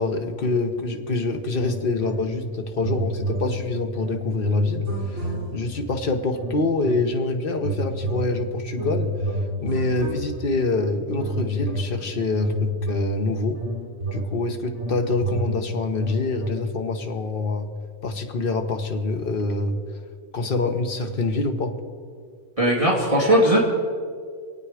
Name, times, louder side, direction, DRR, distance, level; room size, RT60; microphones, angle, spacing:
voice 1, 0.0-9.1 9.6-13.6 14.1-17.7 18.0-19.8 20.3-21.8, left 3 dB, 45° left, 4 dB, 1.3 m, -25 dB
sound 1, 1.6-2.5 2.8-5.8 6.4-7.2 7.6-10.7 11.2-16.5, right 1 dB, 65° right, 2.7 m, -30 dB
voice 2, 22.6-23.6, equal, 25° right, -4 dB, 2.3 m, -18 dB
25.5 x 9.0 x 5.0 m, 2.1 s
omnidirectional pair, 1.3 m